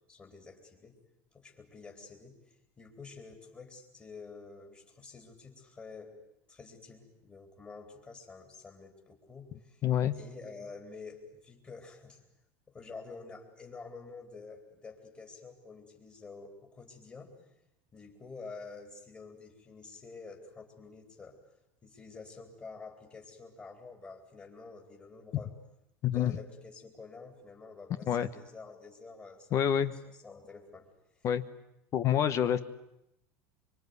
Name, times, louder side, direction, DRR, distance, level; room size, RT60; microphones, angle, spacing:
voice 1, 0.1-1.0 1.3-6.2 6.5-9.8 10.1-12.2 12.7-17.3 17.9-21.4 21.8-25.5 26.1-29.9 30.2-30.9, left 4 dB, 20° left, 2 dB, 3.9 m, -49 dB
voice 2, 9.8-10.1 26.0-26.4 28.1-28.3 29.5-29.9 31.2-31.4 31.9-32.6, left 9 dB, 40° left, 12 dB, 1.2 m, -27 dB
25.0 x 24.0 x 9.7 m, 0.83 s
supercardioid pair, 125°, 8 cm